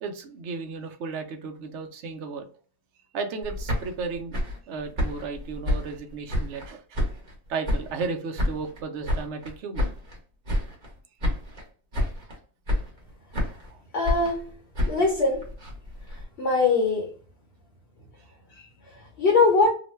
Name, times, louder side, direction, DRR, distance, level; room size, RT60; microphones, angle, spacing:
voice 1, 0.0-2.4 3.1-4.4 4.7-7.0 7.5-9.9 13.7-13.8, right 4 dB, 65° right, 5 dB, 0.8 m, -34 dB
sound 1, 3.4-6.7 6.9-8.1 8.4-10.2 10.4-10.9 11.2-11.7 11.9-12.4 12.7-13.7 14.0-16.2, left 1 dB, 35° right, 0.9 m, -29 dB
voice 2, 13.9-14.4 14.9-15.4 16.4-17.1 19.2-19.7, left 3 dB, 55° left, -1 dB, 0.9 m, -21 dB
2.9 x 2.1 x 3.1 m, 0.42 s
omnidirectional pair, 1.5 m